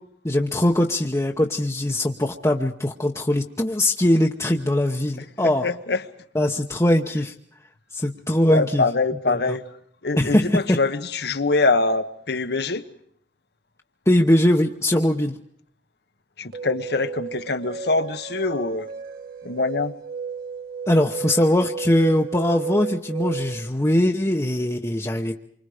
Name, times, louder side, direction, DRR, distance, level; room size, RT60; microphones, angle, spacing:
voice 1, 0.2-5.7 6.3-7.3 7.9-8.8 9.3-9.6 10.2-10.8 14.1-15.4 20.9-25.4, left 1 dB, 15° left, 0.9 m, -21 dB
voice 2, 5.4-6.0 8.5-9.6 10.0-12.8 16.4-18.9 19.4-19.9, left 3 dB, 65° left, 1.2 m, -24 dB
sound 1, 16.5-23.7, right 5 dB, 60° right, 2.1 m, -33 dB
27.5 x 25.0 x 5.0 m
head